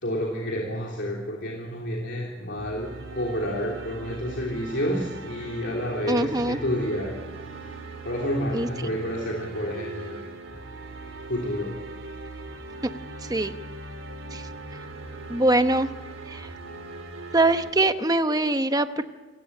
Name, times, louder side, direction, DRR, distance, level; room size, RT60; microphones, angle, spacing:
voice 1, 0.0-7.2 8.0-10.3 11.3-11.8, equal, 65° left, -1 dB, 3.3 m, -29 dB
sound 1, 2.6-17.7, right 2 dB, 85° right, 3.4 m, -40 dB
voice 2, 6.1-6.6 8.5-8.9 13.3-13.5 14.3-14.4 15.3-15.9 16.3-16.5 17.3-19.0, right 2 dB, 20° right, 9 dB, 0.9 m, -23 dB
28.0 x 16.5 x 8.7 m, 1.4 s
head